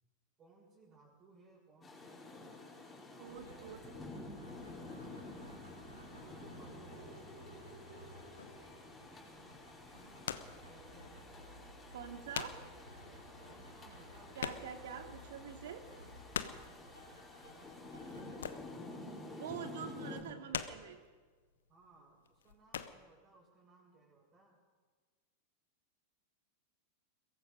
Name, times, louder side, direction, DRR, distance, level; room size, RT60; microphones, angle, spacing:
voice 1, 0.4-2.7 3.1-3.9 4.4-7.3 10.0-11.5 13.4-14.7 16.7-20.0 21.7-24.6, right 3 dB, 25° right, -7 dB, 6.5 m, -63 dB
Rain, 1.8-20.2, left 2 dB, 15° left, 5.4 m, -51 dB
voice 2, 3.2-3.8 11.9-12.6 14.3-15.8 19.3-21.0, right 8 dB, 55° right, 6 dB, 2.2 m, -46 dB
sound 1, 3.2-19.7, equal, 90° right, 7.5 m, -56 dB
sound 2, 8.4-8.7 9.8-10.6 11.0-11.1 11.7-11.8 12.0-12.8 13.0-13.1 13.4-13.5 13.7-15.0 15.3-15.4 15.8-16.7 18.1-18.9 19.2-19.5 20.1-21.1 21.7-21.9 22.3-23.0, left 8 dB, 65° left, 1.1 m, -42 dB
22.5 x 22.0 x 5.4 m, 1.5 s
figure-of-eight pair, 90°, 0 cm